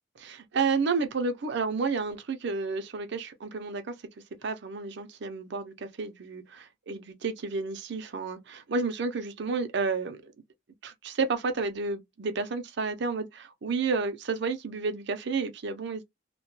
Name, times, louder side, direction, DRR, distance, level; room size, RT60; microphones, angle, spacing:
voice 1, 0.2-3.9 4.4-10.3 10.8-16.0, right 4 dB, 60° right, 0.5 m, -31 dB
2.2 x 2.2 x 3.0 m
head